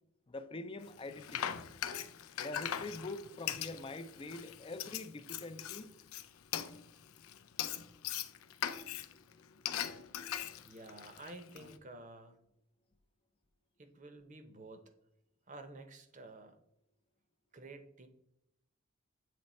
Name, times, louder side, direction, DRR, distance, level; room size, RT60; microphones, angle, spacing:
voice 1, 0.3-1.6 2.4-5.9, left 2 dB, 25° left, 0.4 m, -45 dB
Frying (food), 0.8-11.8, left 10 dB, 85° left, 0.4 m, -41 dB
voice 2, 10.6-12.4 13.8-14.9 15.5-16.6 17.5-18.1, right 2 dB, 35° right, 0.7 m, -51 dB
7.6 x 3.1 x 4.2 m
head